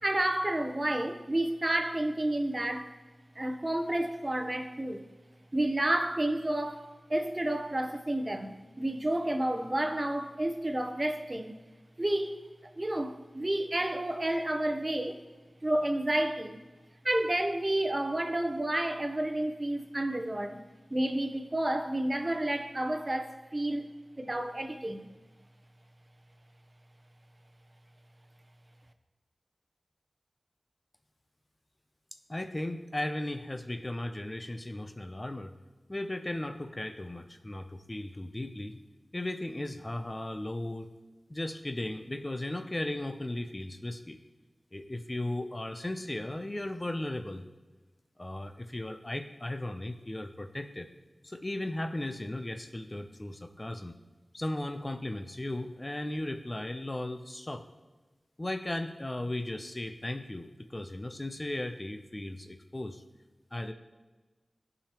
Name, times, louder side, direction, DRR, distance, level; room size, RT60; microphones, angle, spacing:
voice 1, 0.0-2.9 3.4-5.1 5.5-11.6 12.0-12.5 12.8-15.2 15.6-16.6 17.0-20.6 20.9-23.9 24.2-25.1, right 1 dB, 35° right, 0.8 m, -30 dB
voice 2, 32.3-35.6 35.9-38.8 39.1-40.9 41.3-44.2 44.7-47.4 48.2-50.9 51.2-53.9 54.3-57.7 58.4-63.0 63.5-63.7, left 1 dB, 30° left, 0.6 m, -36 dB
14.5 x 4.9 x 3.0 m
cardioid pair, 40°, 0 cm